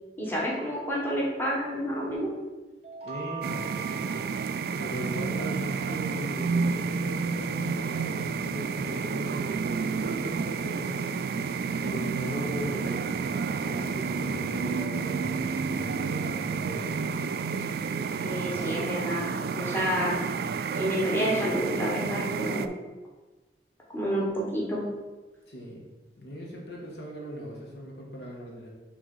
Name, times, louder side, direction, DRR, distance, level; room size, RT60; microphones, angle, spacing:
voice 1, 0.2-2.3 18.2-20.2 20.7-22.8 23.9-24.8, equal, 10° left, -5 dB, 1.3 m, -29 dB
sound 1, 2.8-5.6, right 6 dB, 35° right, 0.7 m, -42 dB
voice 2, 3.0-4.1 4.8-11.0 11.8-13.1 13.6-16.9 25.5-25.8 26.2-28.7, equal, 65° left, -2 dB, 1.4 m, -38 dB
sound 2, 3.4-22.7, right 5 dB, 60° right, 0.3 m, -30 dB
6.1 x 3.4 x 5.4 m, 1.2 s
head